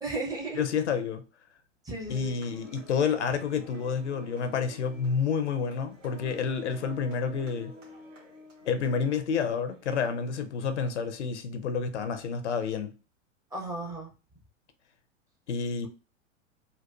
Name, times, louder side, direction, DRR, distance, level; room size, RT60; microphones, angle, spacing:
voice 1, 0.0-0.6 1.9-2.3 13.5-14.1, right 2 dB, 10° right, 0.6 m, -34 dB
voice 2, 0.5-1.2 2.1-7.7 8.7-13.0 15.5-15.9, left 6 dB, 65° left, 0.6 m, -29 dB
sound 1, 2.2-10.5, left 1 dB, 70° right, 1.5 m, -51 dB
4.0 x 2.3 x 2.2 m
figure-of-eight pair, 100°, 38 cm